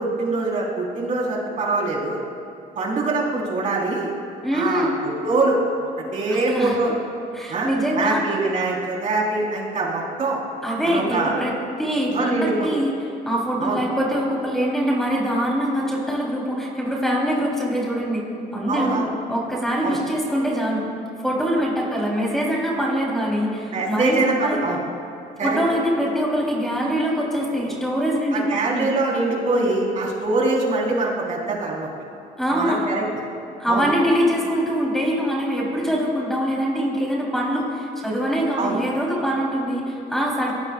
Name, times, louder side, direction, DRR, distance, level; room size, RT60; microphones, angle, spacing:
voice 1, 0.0-2.2 2.7-4.1 4.5-6.9 7.5-7.7 7.9-10.4 10.8-11.3 12.1-12.7 13.6-13.8 18.7-19.1 19.8-20.0 23.7-24.8 25.4-25.6 28.3-31.9 32.5-33.0 33.7-33.9 38.6-38.8, right 3 dB, 45° right, -3 dB, 4.2 m, -23 dB
voice 2, 4.4-5.0 6.3-6.8 7.3-8.2 10.6-12.9 13.2-18.3 18.5-19.0 19.3-20.9 21.2-24.7 25.4-28.9 32.4-32.8 33.6-40.5, equal, ahead, -4 dB, 3.7 m, -23 dB
23.0 x 18.5 x 2.5 m, 2.5 s
cardioid pair, 110°, 17 cm